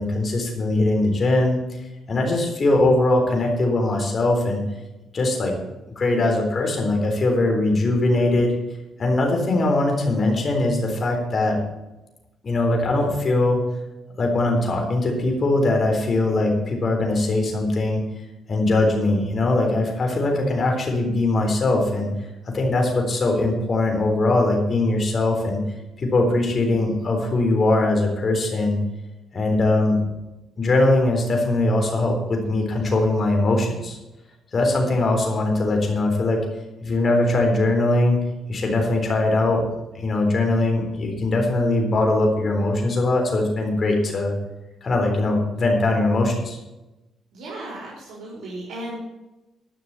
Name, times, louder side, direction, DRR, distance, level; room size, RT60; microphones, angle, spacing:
voice 1, 0.0-1.6 2.1-4.6 5.1-5.5 5.9-8.5 9.0-11.6 12.4-13.6 14.2-18.0 18.5-22.1 22.5-25.6 26.0-28.8 29.3-30.0 30.6-34.0 34.5-36.4 36.8-38.2 38.5-39.6 39.9-44.3 44.8-46.6, left 2 dB, 40° left, 1 dB, 3.8 m, -21 dB
voice 2, 47.3-49.0, right 1 dB, 75° right, -6 dB, 4.0 m, -35 dB
12.0 x 6.1 x 8.2 m, 1.0 s
cardioid pair, 90°, 0 cm